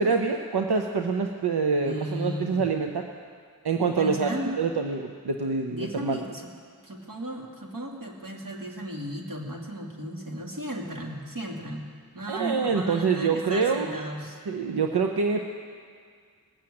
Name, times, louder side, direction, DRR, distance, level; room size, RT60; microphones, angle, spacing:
voice 1, 0.0-3.1 3.6-4.3 4.6-6.2 12.3-14.0 14.5-15.4, right 5 dB, 85° right, 3 dB, 0.8 m, -26 dB
voice 2, 1.8-2.6 3.9-4.5 5.7-6.5 6.8-11.8 12.1-14.4, equal, 55° right, -1 dB, 2.4 m, -35 dB
19.5 x 7.7 x 8.6 m, 2.1 s
wide cardioid pair, 45°, 38 cm